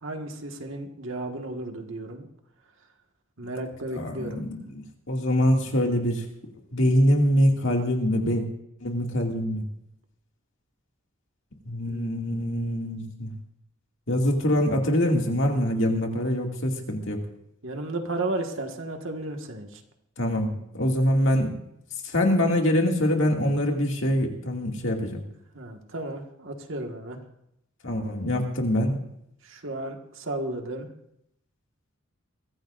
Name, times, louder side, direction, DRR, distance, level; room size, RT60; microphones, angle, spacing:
voice 1, 0.0-2.3 3.4-4.4 11.9-12.4 17.6-19.8 25.5-27.2 29.4-30.9, right 2 dB, 65° right, 4 dB, 1.7 m, -34 dB
voice 2, 3.9-6.2 6.7-8.4 8.8-9.6 11.7-13.3 14.1-17.2 20.2-20.5 20.7-21.5 22.0-25.2 27.8-29.0, equal, 60° left, 1 dB, 2.3 m, -24 dB
23.0 x 15.5 x 2.6 m, 0.79 s
head